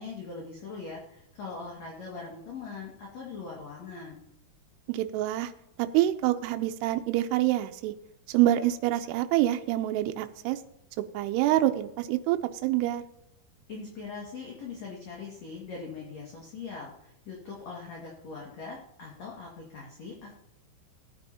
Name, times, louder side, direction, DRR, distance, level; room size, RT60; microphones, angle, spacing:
voice 1, 0.0-4.2 13.7-20.3, left 4 dB, 50° left, -3 dB, 2.7 m, -41 dB
voice 2, 4.9-5.5 5.8-7.9 8.3-10.6 11.1-13.0, right 14 dB, 80° right, 7 dB, 2.7 m, -26 dB
18.0 x 9.6 x 2.8 m, 0.80 s
omnidirectional pair, 4.9 m